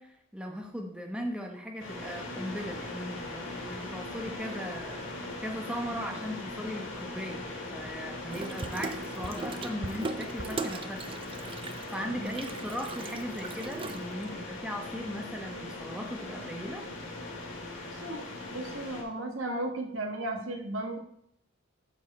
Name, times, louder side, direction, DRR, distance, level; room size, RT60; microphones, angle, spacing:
voice 1, 0.0-5.0 5.4-11.0 11.9-16.8, equal, 5° right, 2 dB, 0.9 m, -38 dB
sound 1, 1.8-19.0, left 2 dB, 65° left, 3.1 m, -40 dB
Water tap faucet / Sink (filling or washing), 8.3-14.4, right 3 dB, 25° right, 0.5 m, -39 dB
voice 2, 17.9-21.0, right 1 dB, 75° right, 4 dB, 1.4 m, -35 dB
12.0 x 4.7 x 4.2 m, 0.73 s
head